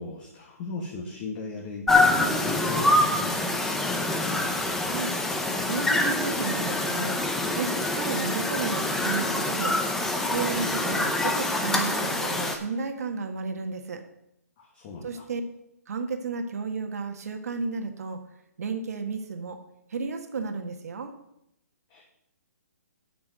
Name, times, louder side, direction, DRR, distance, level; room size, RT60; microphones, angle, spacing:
voice 1, 0.0-3.8 14.6-15.2 21.9-22.0, left 3 dB, 30° left, -1 dB, 1.5 m, -37 dB
sound 1, 1.9-12.5, left 2 dB, 5° left, 0.6 m, -25 dB
voice 2, 4.9-5.3 5.6-9.7 10.3-14.0 15.0-15.4 15.9-18.2 18.6-19.6 19.9-21.1, right 4 dB, 65° right, 6 dB, 1.5 m, -33 dB
8.4 x 6.0 x 7.8 m, 0.80 s
hypercardioid pair, 160°, 9 cm